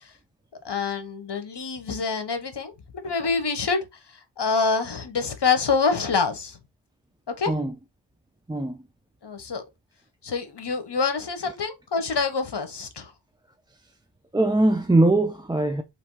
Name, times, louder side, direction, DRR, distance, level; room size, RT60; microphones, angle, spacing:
voice 1, 0.6-3.8 4.4-6.6 7.4-7.5 9.2-9.6 10.2-13.1, left 5 dB, 65° left, 1.0 m, -26 dB
voice 2, 14.3-15.8, right 2 dB, 10° right, 0.4 m, -21 dB
3.4 x 3.0 x 4.5 m
wide cardioid pair, 65°, 45 cm